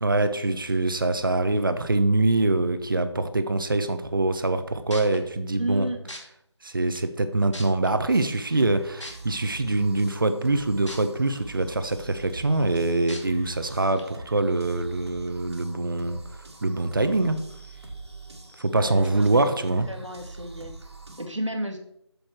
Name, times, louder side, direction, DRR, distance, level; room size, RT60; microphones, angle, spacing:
voice 1, 0.0-5.9 6.6-16.2 16.6-17.4 18.6-19.9, right 2 dB, 45° right, 10 dB, 0.9 m, -24 dB
sound 1, 4.9-5.2 6.1-6.2 7.0-7.1 7.5-7.9 9.0-9.1 10.9-11.0 11.5-11.6 13.1-13.2 14.0-14.1, left 1 dB, 80° left, 2.5 m, -38 dB
voice 2, 5.6-6.0 18.7-19.6 19.9-20.7 21.2-21.8, right 1 dB, 85° right, 3 dB, 2.1 m, -32 dB
sound 2, 8.1-21.3, right 3 dB, 65° right, 2.0 m, -44 dB
7.9 x 7.1 x 4.4 m, 0.74 s
figure-of-eight pair, 165°, 15 cm